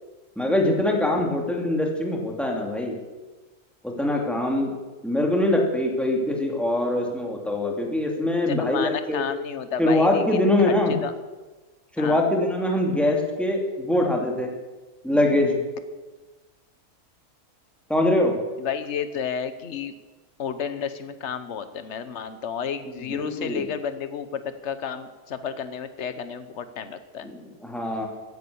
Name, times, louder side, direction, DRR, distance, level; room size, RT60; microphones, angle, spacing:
voice 1, 0.4-2.9 3.8-4.7 5.0-9.2 9.8-10.9 11.9-14.5 15.0-15.6 17.9-18.3 23.1-23.7 27.2-28.1, left 1 dB, ahead, 0 dB, 2.6 m, -23 dB
voice 2, 8.5-11.1 12.0-12.2 18.6-19.9 20.4-27.3, left 7 dB, 50° left, 11 dB, 1.3 m, -32 dB
15.0 x 11.0 x 7.0 m, 1.2 s
omnidirectional pair, 1.6 m